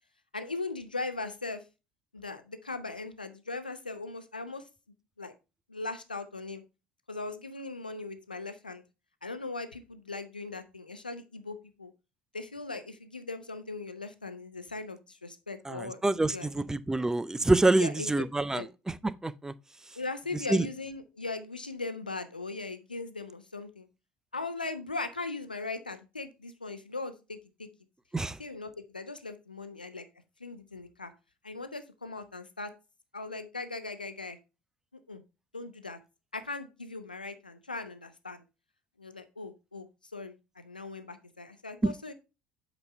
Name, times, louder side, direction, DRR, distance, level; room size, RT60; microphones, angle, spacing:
voice 1, 0.3-1.6 2.1-4.6 5.2-5.3 5.7-6.6 7.1-8.8 9.2-11.9 12.3-16.5 17.8-18.1 18.5-18.7 20.0-23.9 24.3-27.7 28.4-30.0 30.4-31.1 31.4-32.7 33.1-34.4 35.1-35.2 35.5-36.0 36.3-38.4 39.0-42.1, left 3 dB, 90° left, 0.7 m, -39 dB
voice 2, 15.7-18.9 19.2-19.5 20.5-20.7 28.1-28.4 41.8-41.9, right 2 dB, 10° right, 0.6 m, -26 dB
8.1 x 5.2 x 3.3 m
figure-of-eight pair, 60°, 5 cm